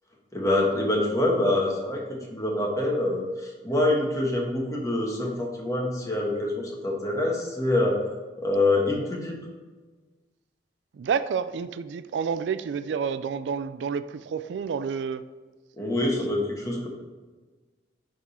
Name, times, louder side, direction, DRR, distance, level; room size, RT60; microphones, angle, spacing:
voice 1, 0.3-8.0 8.4-9.4 15.8-16.9, left 2 dB, 20° left, -1 dB, 1.3 m, -25 dB
voice 2, 10.9-15.2, right 6 dB, 75° right, 13 dB, 0.3 m, -29 dB
10.5 x 3.7 x 4.2 m, 1.3 s
head